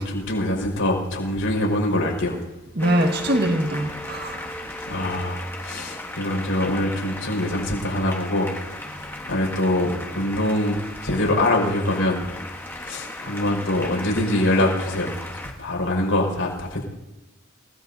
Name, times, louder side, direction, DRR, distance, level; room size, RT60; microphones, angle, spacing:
voice 1, 0.0-2.4 4.9-8.5 8.9-12.2 12.8-15.1 15.6-16.8, left 1 dB, 75° left, 0 dB, 5.5 m, -24 dB
sound 1, 2.8-15.5, left 1 dB, 10° left, 1.3 m, -36 dB
voice 2, 2.8-4.5, right 1 dB, 50° right, 3 dB, 1.7 m, -23 dB
28.5 x 18.0 x 2.7 m, 1.0 s
head